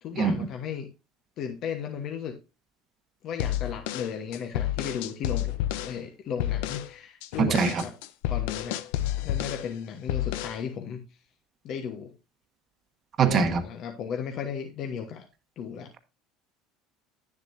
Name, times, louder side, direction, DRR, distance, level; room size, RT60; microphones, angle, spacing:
voice 1, 0.0-0.9 1.4-2.4 3.2-7.9 8.3-8.8 9.2-11.0 11.6-12.1 13.3-15.3 15.6-15.9, left 7 dB, 55° left, 4 dB, 1.2 m, -35 dB
sound 1, 3.4-6.0 6.4-6.9 7.2-9.7 10.1-10.6, left 13 dB, 80° left, 0.6 m, -30 dB
voice 2, 7.4-7.8 13.2-13.6, right 6 dB, 40° right, 8 dB, 1.2 m, -22 dB
9.7 x 7.3 x 2.7 m, 0.28 s
supercardioid pair, 105°, 0 cm